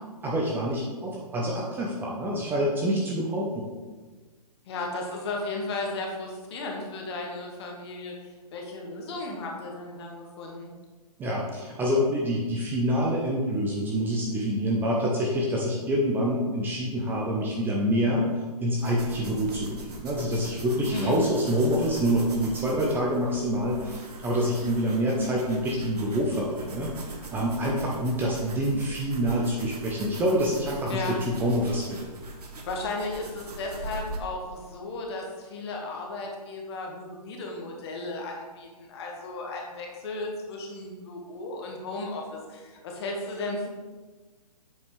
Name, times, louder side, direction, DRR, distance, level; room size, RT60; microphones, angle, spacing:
voice 1, 0.2-3.7 11.2-18.2 18.6-32.1, equal, 10° right, -3 dB, 0.5 m, -26 dB
voice 2, 4.7-10.7 20.9-21.2 30.9-31.2 32.7-43.7, left 2 dB, 40° left, 0 dB, 1.4 m, -35 dB
sound 1, 18.8-34.2, right 3 dB, 75° right, 1.2 m, -41 dB
7.3 x 5.1 x 3.1 m, 1.4 s
hypercardioid pair, 140°, 20 cm